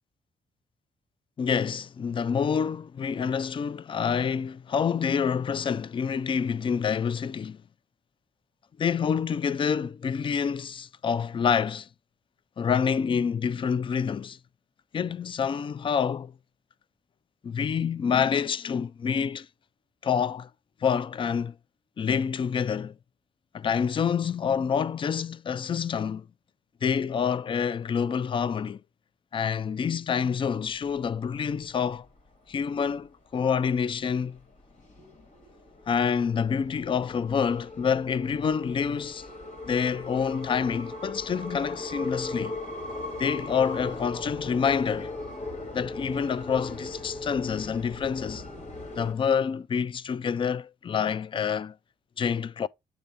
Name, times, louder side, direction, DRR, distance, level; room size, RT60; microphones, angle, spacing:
voice 1, 1.4-7.6 8.8-11.9 12.6-14.4 14.9-16.3 17.4-19.5 20.0-20.5 20.8-21.6 22.0-22.9 23.5-26.3 26.8-28.8 29.3-32.1 32.5-34.4 35.9-39.3 39.7-42.6 43.2-45.1 45.7-48.4 48.9-51.8 52.2-52.7, left 7 dB, 30° left, 0.4 m, -27 dB
sound 1, 31.0-31.7 32.1-32.2 32.6-33.0 33.6-33.9 34.4-49.1, left 2 dB, 50° left, 2.0 m, -38 dB
9.2 x 3.3 x 4.0 m
cardioid pair, 95°, 16 cm